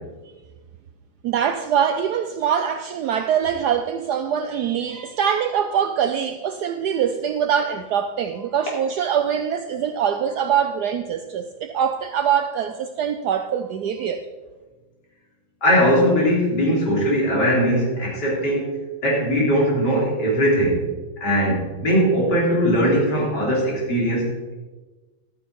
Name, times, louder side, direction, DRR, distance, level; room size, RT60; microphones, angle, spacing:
voice 1, 1.2-14.2, right 8 dB, 90° right, 0.8 m, -23 dB
voice 2, 15.6-18.7 19.0-20.8 21.2-24.3, equal, 50° left, 3.7 m, -20 dB
12.5 x 8.7 x 4.6 m
omnidirectional pair, 2.3 m